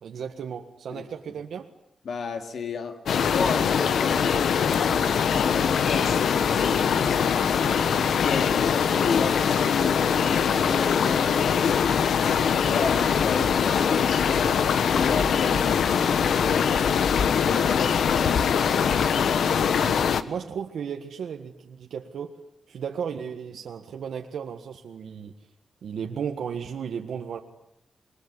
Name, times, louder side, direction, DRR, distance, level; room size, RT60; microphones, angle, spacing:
voice 1, 0.0-1.7 19.8-20.0 20.3-22.3 22.7-25.3 25.8-27.4, right 7 dB, 85° right, 3 dB, 1.6 m, -34 dB
voice 2, 2.0-4.3 4.8-7.1 7.8-11.5 12.5-16.7 17.3-18.8, left 5 dB, 60° left, 7 dB, 2.5 m, -33 dB
sound 1, 3.1-20.2, left 7 dB, 80° left, 1.3 m, -22 dB
27.0 x 21.5 x 9.7 m, 0.77 s
wide cardioid pair, 170°, 0 cm